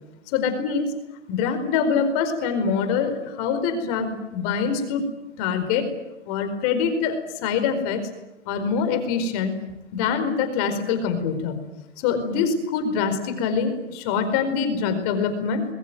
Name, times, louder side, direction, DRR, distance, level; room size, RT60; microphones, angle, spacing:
voice 1, 0.3-0.9 1.3-5.0 5.4-5.9 6.3-8.0 8.4-9.5 9.9-11.6 12.0-15.7, left 6 dB, 30° left, 8 dB, 4.8 m, -24 dB
25.5 x 22.0 x 9.4 m, 0.93 s
hypercardioid pair, 150°, 36 cm